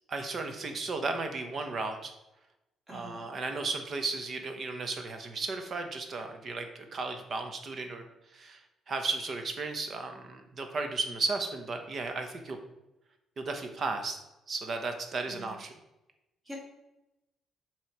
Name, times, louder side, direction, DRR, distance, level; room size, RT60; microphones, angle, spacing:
voice 1, 0.1-2.1 2.9-8.0 8.3-12.6 13.4-14.2 14.5-15.7, right 3 dB, 40° right, 5 dB, 1.0 m, -35 dB
voice 2, 2.9-3.3 15.3-15.5 16.5-16.6, equal, 20° right, -2 dB, 2.2 m, -45 dB
7.4 x 3.2 x 5.9 m, 0.94 s
cardioid pair, 135°, 0 cm